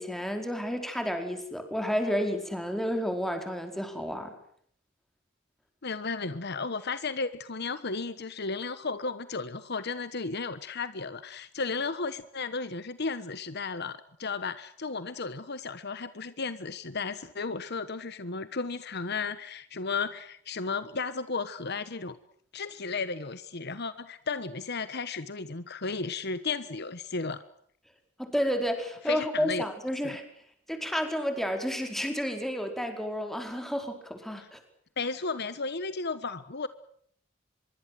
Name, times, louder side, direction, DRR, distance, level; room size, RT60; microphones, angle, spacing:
voice 1, 0.0-4.3 28.2-30.2 30.7-34.6, equal, ahead, 5 dB, 4.7 m, -31 dB
voice 2, 5.8-22.2 22.5-27.4 29.1-29.6 30.0-30.2 34.4-34.5 35.0-36.7, left 4 dB, 55° left, 13 dB, 1.2 m, -34 dB
25.0 x 23.0 x 7.8 m, 0.63 s
head